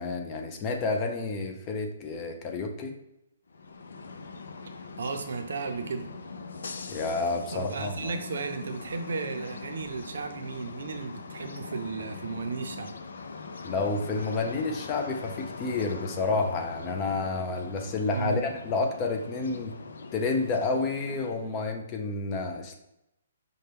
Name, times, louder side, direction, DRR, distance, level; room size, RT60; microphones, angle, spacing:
voice 1, 0.0-2.9 6.9-8.1 13.6-19.7 20.1-22.8, left 3 dB, 20° left, 3 dB, 0.5 m, -30 dB
sound 1, 3.5-21.6, left 4 dB, 80° left, 0.4 m, -42 dB
voice 2, 5.0-6.1 7.5-12.9 18.1-18.4, right 4 dB, 70° right, 6 dB, 0.6 m, -34 dB
5.4 x 2.2 x 3.4 m, 0.85 s
hypercardioid pair, 165°, 0 cm